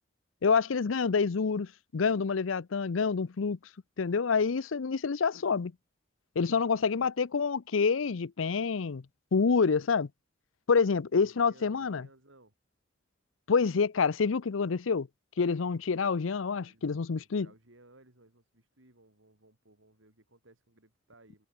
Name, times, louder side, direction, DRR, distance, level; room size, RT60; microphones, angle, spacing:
voice 1, 0.4-3.6 4.0-5.7 6.4-9.0 9.3-10.1 10.7-12.0 13.5-15.1 15.4-17.5, left 5 dB, 85° left, 0.6 m, -27 dB
voice 2, 6.7-7.1 11.1-12.5 15.9-16.1 16.6-21.5, right 2 dB, 75° right, 4.6 m, -60 dB
head